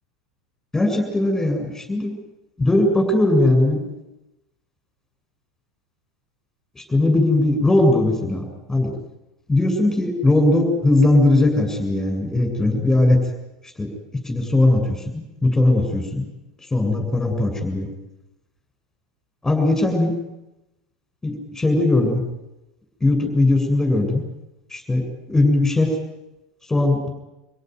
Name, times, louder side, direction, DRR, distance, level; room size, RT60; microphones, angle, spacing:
voice 1, 0.7-2.2 2.6-3.8 6.8-8.9 9.5-13.2 13.8-13.9 14.3-16.2 16.7-17.9 19.4-20.1 21.2-22.2 23.0-24.2 24.7-25.9 26.7-27.1, left 2 dB, 10° left, 3 dB, 7.5 m, -19 dB
26.5 x 17.5 x 9.7 m, 0.96 s
hypercardioid pair, 95°, 4 cm